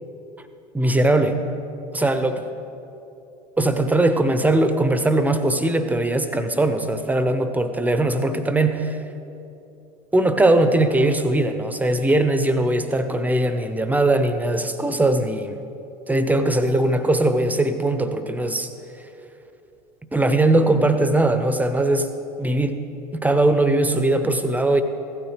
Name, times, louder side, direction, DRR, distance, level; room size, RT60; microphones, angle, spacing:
voice 1, 0.7-1.4 1.9-2.4 3.6-9.0 10.1-15.6 16.1-18.7 20.1-22.1 22.4-22.9 23.1-24.8, right 2 dB, 10° right, 9 dB, 0.8 m, -20 dB
15.5 x 12.5 x 3.4 m, 2.9 s
hypercardioid pair, 75°, 20 cm